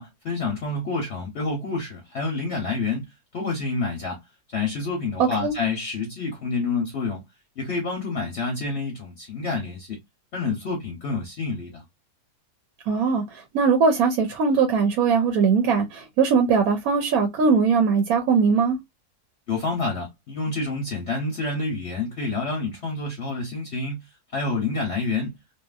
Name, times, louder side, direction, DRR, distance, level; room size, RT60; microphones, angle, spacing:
voice 1, 0.0-3.0 3.3-4.2 4.5-7.2 7.6-10.0 10.3-11.8 19.5-24.0 24.3-25.3, left 3 dB, 55° left, 0.9 m, -28 dB
voice 2, 5.2-5.5 12.9-18.8, right 5 dB, 75° right, 1.1 m, -20 dB
2.8 x 2.5 x 2.3 m
omnidirectional pair, 1.6 m